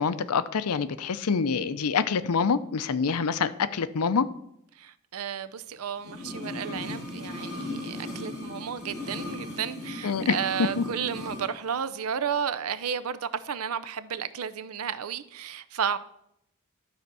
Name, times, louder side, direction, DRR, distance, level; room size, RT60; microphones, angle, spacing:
voice 1, 0.0-4.3 10.0-10.8, left 5 dB, 90° left, 0.6 m, -26 dB
voice 2, 4.8-16.0, right 7 dB, 80° right, 0.6 m, -32 dB
sound 1, 6.0-11.5 11.7-11.8, left 2 dB, 15° left, 4.3 m, -37 dB
12.0 x 4.4 x 6.8 m
head